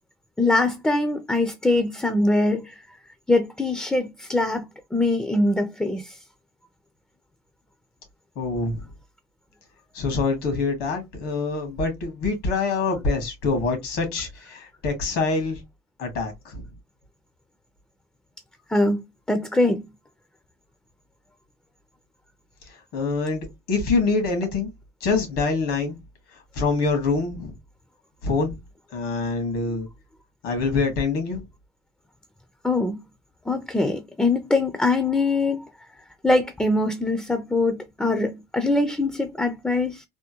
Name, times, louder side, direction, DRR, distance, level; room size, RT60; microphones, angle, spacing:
voice 1, 0.4-2.8 3.3-4.6 4.9-6.2 18.7-19.0 19.3-19.9 32.6-33.0 33.5-35.7 36.2-40.0, left 2 dB, 5° left, 0.4 m, -23 dB
voice 2, 8.4-8.8 9.9-15.6 16.0-16.6 22.9-24.7 25.0-26.0 26.5-27.6 28.2-28.6 28.9-29.9 30.4-31.4, left 4 dB, 75° left, 1.7 m, -25 dB
3.6 x 2.2 x 2.8 m
cardioid pair, 115°, 17 cm